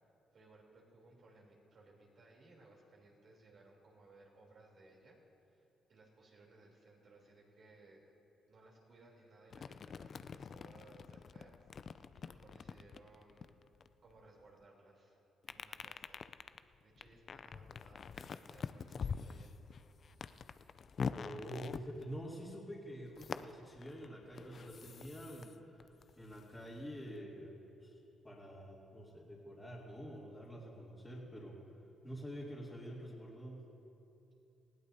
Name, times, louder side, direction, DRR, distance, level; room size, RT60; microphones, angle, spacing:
voice 1, 0.0-8.1 8.5-11.6 11.9-13.5 14.0-15.2 15.5-16.2 16.8-19.5, right 2 dB, 50° right, -2 dB, 3.3 m, -62 dB
sound 1, 9.5-14.4 15.4-22.5 23.2-25.5 25.8-27.1, left 6 dB, 50° left, 0.4 m, -45 dB
voice 2, 21.1-25.9 26.2-31.6 32.0-33.6, equal, 10° left, -9 dB, 2.6 m, -47 dB
20.0 x 16.0 x 2.8 m, 2.8 s
cardioid pair, 90°, 0 cm